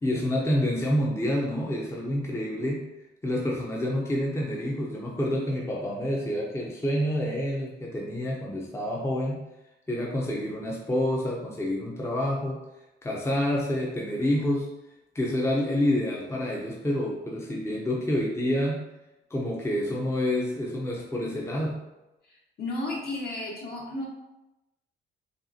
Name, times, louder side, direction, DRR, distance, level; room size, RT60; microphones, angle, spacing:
voice 1, 0.0-2.8 3.2-9.4 9.9-12.6 13.0-14.7 15.1-18.8 19.3-21.8, left 1 dB, 15° left, -3 dB, 0.7 m, -28 dB
voice 2, 22.2-24.1, left 2 dB, 55° left, -3 dB, 1.4 m, -33 dB
5.2 x 2.4 x 2.8 m, 0.98 s
cardioid pair, 90°, 20 cm